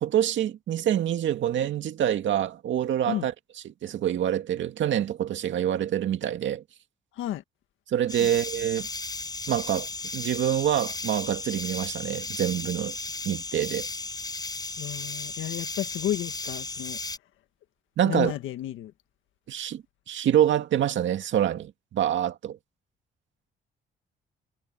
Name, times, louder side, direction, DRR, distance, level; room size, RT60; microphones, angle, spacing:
voice 1, 0.0-3.3 3.6-6.6 7.9-8.9 9.5-12.9 13.2-13.9 18.0-18.3 19.5-22.6, right 10 dB, 70° right, 2.2 m, -26 dB
sound 1, 8.1-17.2, left 3 dB, 20° left, 5.2 m, -35 dB
voice 2, 14.8-17.0 18.0-18.9, left 13 dB, 85° left, 1.6 m, -32 dB
cardioid pair, 90°, 20 cm